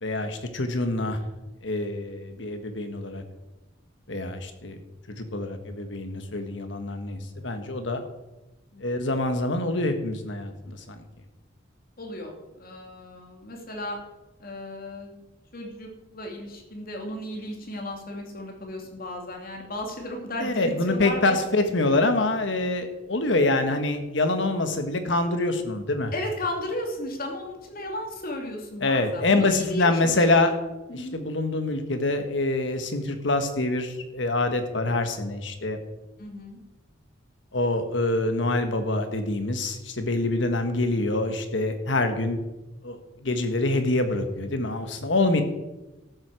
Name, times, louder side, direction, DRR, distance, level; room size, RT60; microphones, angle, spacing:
voice 1, 0.0-1.2 1.6-3.2 4.1-4.8 5.1-8.0 8.8-11.0 20.4-26.1 28.8-30.5 30.9-35.8 37.5-42.4 42.8-45.4, left 2 dB, 70° left, 7 dB, 1.6 m, -25 dB
voice 2, 8.7-9.1 12.0-12.3 12.6-14.0 14.4-15.1 15.5-21.4 26.1-30.4 30.9-31.2 36.2-36.6 45.2-45.4, left 1 dB, 50° left, 2 dB, 2.7 m, -35 dB
13.0 x 7.8 x 6.4 m, 1.0 s
head